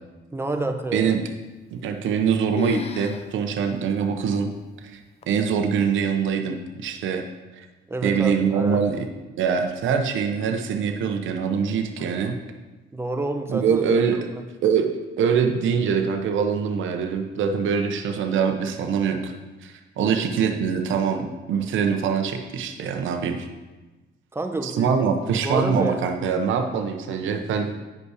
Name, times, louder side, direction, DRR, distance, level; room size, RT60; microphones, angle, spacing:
voice 1, 0.3-1.2 7.9-8.8 12.9-13.8 14.1-14.2 20.0-20.2 24.3-25.0 25.4-26.1, right 2 dB, 10° right, 5 dB, 0.9 m, -28 dB
voice 2, 0.9-1.2 1.7-4.5 4.8-5.0 5.3-7.2 7.6-7.7 8.0-9.1 9.4-12.4 13.5-14.3 14.6-14.9 15.2-19.3 19.6-23.5 24.6-27.7, right 6 dB, 75° right, 5 dB, 0.8 m, -23 dB
sound 1, 1.8-2.3 2.6-3.3 3.6-3.7 4.4-4.5 5.2-5.6, left 5 dB, 30° left, 0.5 m, -32 dB
9.5 x 5.4 x 4.9 m, 1.2 s
cardioid pair, 90°, 20 cm